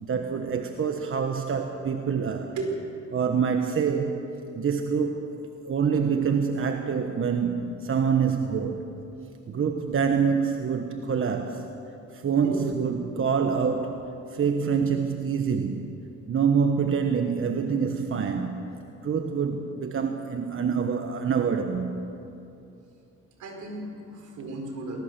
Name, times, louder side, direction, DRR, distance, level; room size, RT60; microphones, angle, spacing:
voice 1, 0.0-2.5 3.1-4.2 4.5-8.8 9.5-11.7 12.1-15.9 16.3-18.6 19.0-21.9, right 6 dB, 45° right, 5 dB, 1.3 m, -26 dB
voice 2, 2.3-2.7 12.4-12.8 23.4-25.0, right 3 dB, 75° right, 2 dB, 4.8 m, -35 dB
20.5 x 18.5 x 6.9 m, 2.8 s
cardioid pair, 90°, 30 cm